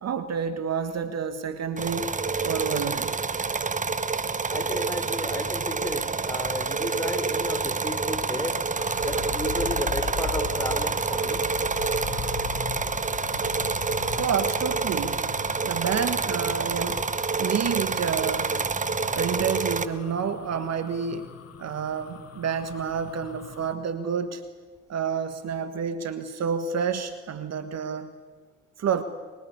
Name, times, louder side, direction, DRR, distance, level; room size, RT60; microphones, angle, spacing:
voice 1, 0.0-2.1 2.4-3.1 14.1-15.2 15.6-17.0 17.4-18.5 19.1-21.3 21.6-24.4 24.9-28.1 28.8-29.0, right 6 dB, 45° right, 10 dB, 1.7 m, -29 dB
sound 1, 1.8-19.9, right 4 dB, 20° right, 1.2 m, -28 dB
voice 2, 4.5-8.6 9.0-11.4, left 1 dB, 10° left, 7 dB, 4.1 m, -33 dB
sound 2, 8.8-23.7, left 7 dB, 40° left, 2.1 m, -39 dB
23.5 x 22.0 x 8.4 m, 1.4 s
hypercardioid pair, 65°, 37 cm